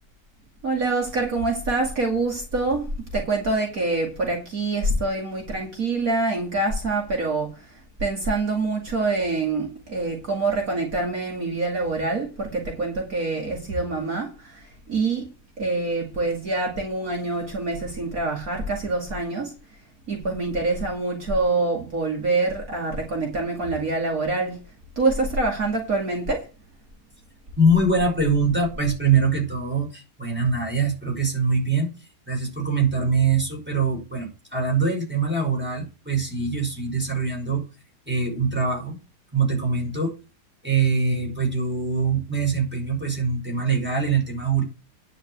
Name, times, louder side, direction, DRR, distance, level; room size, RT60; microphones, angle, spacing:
voice 1, 0.6-7.7 8.0-15.3 15.6-19.5 20.1-24.6 25.0-26.5, right 3 dB, 55° right, 2.8 m, -25 dB
voice 2, 27.6-31.9 32.3-37.6 38.1-39.0 39.3-40.1 40.6-44.6, right 4 dB, 5° right, 5.3 m, -23 dB
10.5 x 5.7 x 8.0 m
omnidirectional pair, 1.8 m